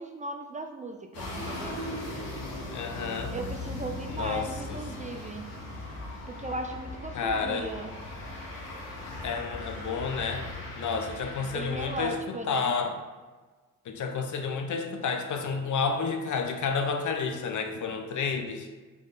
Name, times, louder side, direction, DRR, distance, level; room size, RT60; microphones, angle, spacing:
voice 1, 0.0-1.8 3.3-5.5 6.3-8.0 11.4-12.8, right 2 dB, 25° right, 4 dB, 0.3 m, -37 dB
sound 1, 1.1-12.1, left 2 dB, 85° left, 1.1 m, -38 dB
voice 2, 2.7-3.3 4.1-5.1 7.1-7.7 9.2-12.2 12.5-13.0 13.8-18.7, left 5 dB, 60° left, 5 dB, 0.6 m, -31 dB
3.5 x 3.2 x 3.8 m, 1.3 s
cardioid pair, 70°, 34 cm